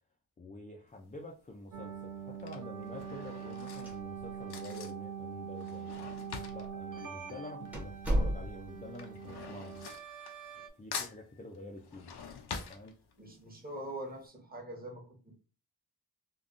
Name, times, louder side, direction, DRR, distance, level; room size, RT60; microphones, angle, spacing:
voice 1, 0.4-6.1 6.5-9.8 10.8-12.1 12.7-13.0, left 2 dB, 20° left, 0.4 m, -48 dB
Drawer open or close / Cutlery silverware, 0.9-1.3 2.1-8.0 8.3-10.7 10.9-13.4 13.9-14.0 14.2-14.3, left 6 dB, 80° left, 0.6 m, -45 dB
sound 1, 1.7-10.7, right 7 dB, 55° right, 0.5 m, -43 dB
sound 2, 3.7-4.5 4.7-4.8 5.6-5.7 6.5-6.7 7.1-7.2 7.7-8.9, equal, 5° right, 0.7 m, -33 dB
voice 2, 13.2-15.4, right 1 dB, 25° right, 1.0 m, -43 dB
3.5 x 2.2 x 2.4 m
wide cardioid pair, 110°, 38 cm